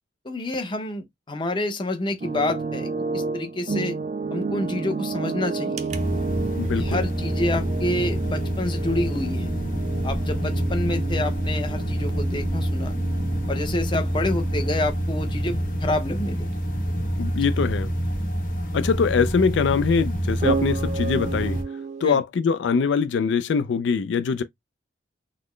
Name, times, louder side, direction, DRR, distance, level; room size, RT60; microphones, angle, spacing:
voice 1, 0.2-4.0 4.3-5.9 6.8-9.5 10.0-12.9 13.5-16.5 22.0-22.2, left 2 dB, 25° left, 0.6 m, -28 dB
sound 1, 2.2-17.7 18.0-18.3 20.4-22.1, right 4 dB, 40° right, 0.4 m, -32 dB
sound 2, 5.9-21.6, equal, 45° left, 1.0 m, -27 dB
voice 2, 6.6-7.0 17.2-17.9 18.7-21.6 22.0-24.4, left 5 dB, 75° left, 0.4 m, -23 dB
3.9 x 2.0 x 3.1 m
head